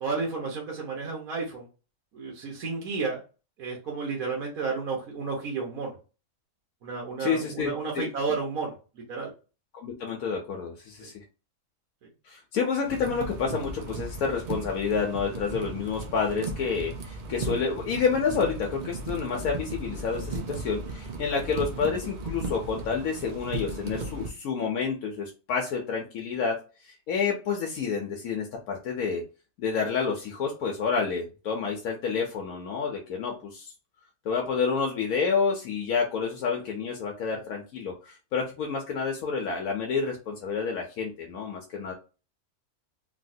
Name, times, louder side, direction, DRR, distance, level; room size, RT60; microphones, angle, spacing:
voice 1, 0.0-1.7 2.1-3.2 3.6-6.0 6.8-9.3 11.0-11.1, right 4 dB, 90° right, -2 dB, 1.4 m, -32 dB
voice 2, 7.2-8.1 9.8-11.2 12.2-26.6 26.8-29.2 29.6-33.7 34.2-41.9, left 5 dB, 85° left, 0 dB, 1.1 m, -29 dB
sound 1, 12.8-24.3, right 2 dB, 50° right, 0.5 m, -36 dB
3.1 x 2.8 x 2.6 m, 0.33 s
omnidirectional pair, 1.5 m